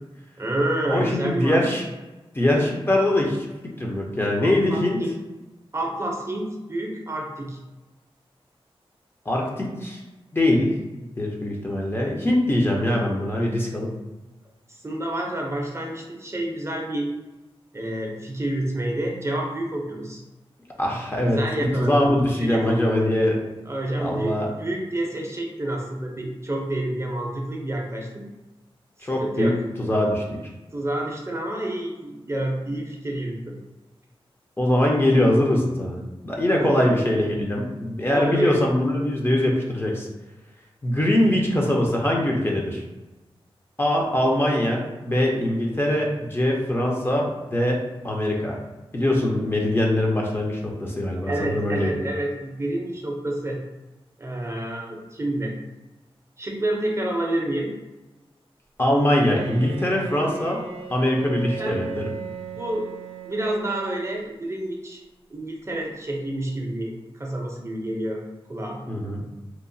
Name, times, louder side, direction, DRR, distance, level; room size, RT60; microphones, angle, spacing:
voice 1, 0.4-1.6 4.4-5.1 5.7-7.6 14.7-17.1 17.7-20.2 21.3-22.1 22.4-22.7 23.7-28.3 29.0-29.6 30.7-33.6 36.5-37.0 38.1-38.6 51.2-53.6 54.2-55.6 56.4-57.7 61.6-61.9 62.6-62.9 63.2-65.0 65.3-68.2 68.5-68.8, right 1 dB, 25° right, 0 dB, 0.5 m, -28 dB
voice 2, 0.9-1.8 2.3-3.5 3.8-5.0 9.3-10.0 10.3-10.7 11.2-13.9 20.8-21.4 21.8-23.4 24.0-24.5 29.0-29.5 29.8-30.4 34.6-36.0 36.2-40.1 40.8-42.8 43.8-48.6 48.9-51.9 58.8-60.6 60.9-62.1 68.9-69.3, left 1 dB, 20° left, -1 dB, 0.5 m, -22 dB
Bowed string instrument, 59.0-64.4, right 5 dB, 80° right, 0.4 m, -37 dB
2.8 x 2.0 x 2.6 m, 1.1 s
wide cardioid pair, 85°, 10 cm